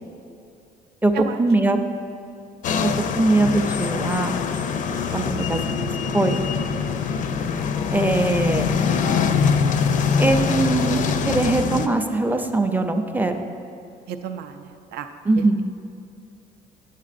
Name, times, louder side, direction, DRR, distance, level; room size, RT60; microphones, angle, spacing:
voice 1, 1.4-1.8 3.1-4.4 5.1-6.4 7.9-8.7 10.1-13.4 15.3-15.6, right 2 dB, 10° right, 6 dB, 0.4 m, -21 dB
sound 1, 2.6-11.9, left 6 dB, 50° left, 0.4 m, -23 dB
voice 2, 14.1-15.1 15.3-15.4, right 8 dB, 70° right, 7 dB, 0.4 m, -32 dB
9.2 x 7.3 x 2.5 m, 2.5 s
cardioid pair, 110°, 17 cm